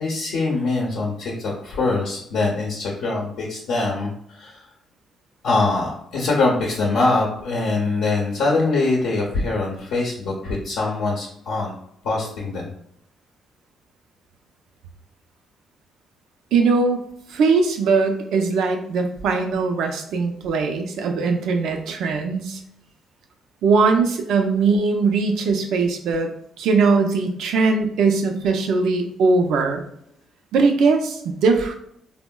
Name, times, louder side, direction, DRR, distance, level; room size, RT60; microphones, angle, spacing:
voice 1, 0.0-4.6 5.4-11.7 12.0-12.7, left 3 dB, 85° left, -4 dB, 0.6 m, -23 dB
voice 2, 16.5-17.0 17.3-22.6 23.6-26.3 26.6-29.8 30.5-31.7, right 4 dB, 80° right, 4 dB, 0.4 m, -20 dB
3.5 x 2.0 x 2.2 m, 0.71 s
cardioid pair, 90°, 0 cm